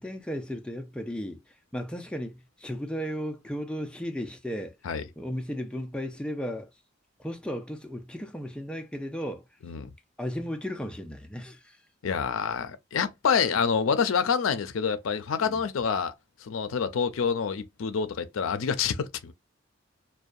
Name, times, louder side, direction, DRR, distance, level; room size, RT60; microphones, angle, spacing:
voice 1, 0.0-1.4 1.7-4.7 5.2-6.7 7.2-9.4 10.2-11.6 15.4-15.6, equal, 5° left, 0.4 m, -35 dB
voice 2, 12.0-16.1 16.4-19.3, left 6 dB, 85° left, 0.4 m, -27 dB
2.6 x 2.2 x 2.3 m
head